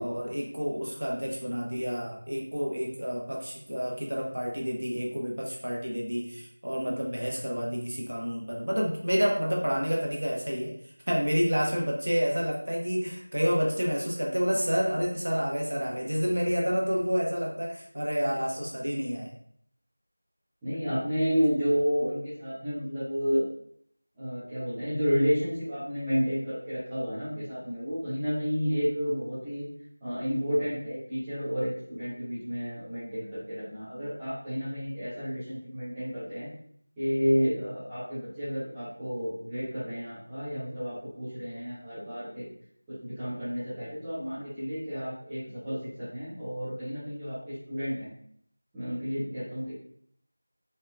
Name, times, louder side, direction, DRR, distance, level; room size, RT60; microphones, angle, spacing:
voice 1, 0.0-10.7 11.1-19.3, equal, 60° right, -1 dB, 1.1 m, -29 dB
voice 2, 20.6-23.4 24.2-29.6 30.0-36.5 37.0-42.5 42.9-48.1 48.7-49.7, equal, 5° right, -17 dB, 1.5 m, -31 dB
4.3 x 3.6 x 2.3 m, 0.64 s
figure-of-eight pair, 170°, 0 cm